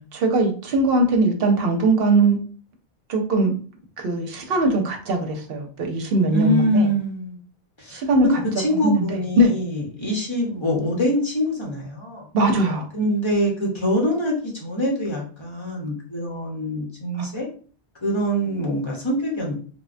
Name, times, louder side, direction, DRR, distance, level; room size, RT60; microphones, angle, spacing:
voice 1, 0.1-2.4 3.1-3.5 4.0-6.9 7.9-8.3 8.7-9.5 12.3-12.9 17.2-17.3, right 2 dB, 70° right, 4 dB, 0.8 m, -20 dB
voice 2, 6.3-7.4 7.8-8.3 8.6-12.3 12.9-17.5 18.0-19.5, equal, 30° left, -2 dB, 0.8 m, -24 dB
3.2 x 2.1 x 2.5 m, 0.41 s
omnidirectional pair, 1.1 m